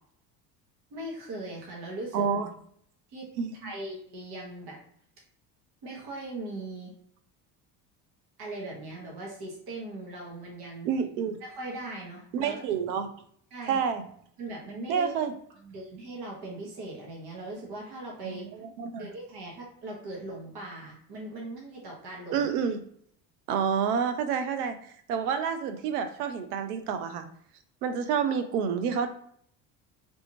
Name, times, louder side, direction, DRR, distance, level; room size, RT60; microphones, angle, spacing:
voice 1, 0.9-2.2 3.1-4.8 5.8-6.9 8.4-10.9 11.4-12.6 13.5-13.8 14.4-15.2 15.6-18.4 19.0-22.5, right 2 dB, 60° right, -2 dB, 1.5 m, -39 dB
voice 2, 2.1-2.5 3.4-3.5 10.8-11.4 12.3-13.1 13.7-14.0 14.9-15.3 18.2-19.1 22.3-22.8 23.5-24.8 25.1-27.3 27.8-29.1, right 7 dB, 90° right, 9 dB, 0.6 m, -28 dB
3.3 x 2.6 x 3.0 m, 0.64 s
supercardioid pair, 75°, 44 cm